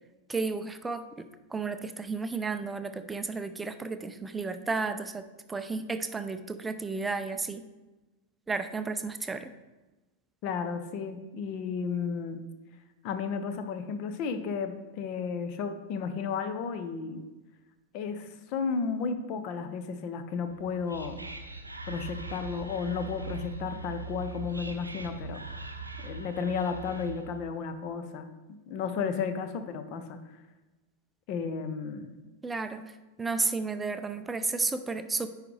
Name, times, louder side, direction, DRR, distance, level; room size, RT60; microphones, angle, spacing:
voice 1, 0.3-7.6 8.5-9.5 32.4-35.3, right 4 dB, 10° right, 9 dB, 0.5 m, -33 dB
voice 2, 10.4-12.4 13.0-17.2 17.9-21.3 21.9-25.4 26.0-28.3 28.7-30.2 31.3-32.1, left 5 dB, 40° left, 9 dB, 0.7 m, -33 dB
Whispering, 20.5-27.4, right 3 dB, 85° right, 0.6 m, -41 dB
9.6 x 4.9 x 3.2 m, 1.1 s
figure-of-eight pair, 90°, 0 cm